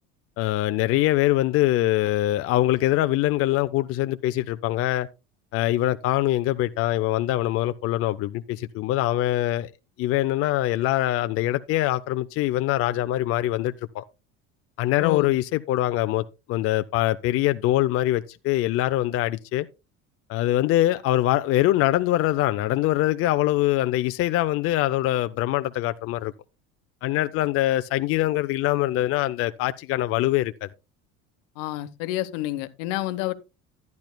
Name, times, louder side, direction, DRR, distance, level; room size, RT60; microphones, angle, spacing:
voice 1, 0.4-5.1 5.5-9.7 10.0-14.0 14.8-19.7 20.3-26.3 27.0-30.7, left 15 dB, 50° left, 0.5 m, -23 dB
voice 2, 15.0-15.3 31.6-33.3, left 15 dB, 80° left, 1.0 m, -29 dB
11.5 x 10.5 x 2.2 m
cardioid pair, 130°, 31 cm